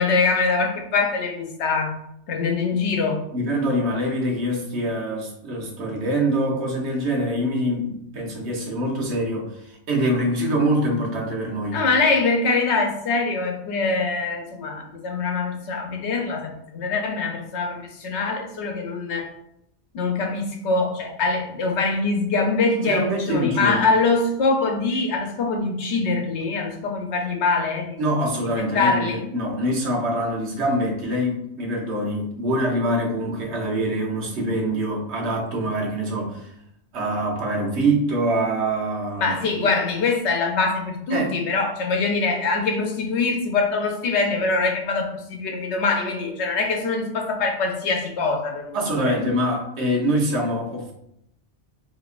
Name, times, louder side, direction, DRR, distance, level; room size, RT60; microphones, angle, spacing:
voice 1, 0.0-2.0 2.3-3.2 11.7-19.3 19.9-28.0 28.7-29.2 39.2-48.8 49.1-49.4, left 4 dB, 80° left, 3 dB, 1.0 m, -23 dB
voice 2, 3.3-11.8 22.7-23.9 28.0-36.5 36.9-39.3 41.1-41.3 48.7-50.9, right 1 dB, 70° right, -1 dB, 1.2 m, -24 dB
4.0 x 2.8 x 2.4 m, 0.76 s
omnidirectional pair, 1.2 m